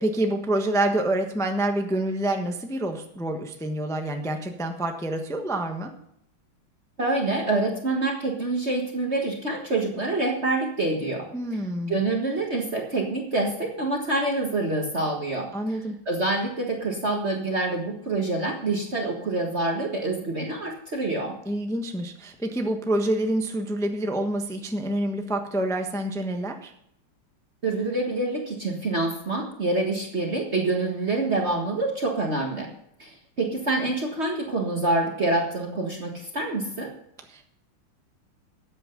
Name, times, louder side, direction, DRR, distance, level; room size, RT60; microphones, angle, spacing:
voice 1, 0.0-5.9 11.3-11.9 15.5-16.0 21.4-26.7 37.3-37.5, right 1 dB, ahead, 4 dB, 0.8 m, -27 dB
voice 2, 7.0-11.6 11.9-15.8 16.0-21.3 27.6-32.7 33.0-36.9, right 2 dB, 35° right, 0 dB, 1.6 m, -26 dB
13.5 x 8.9 x 5.3 m, 0.73 s
omnidirectional pair, 2.2 m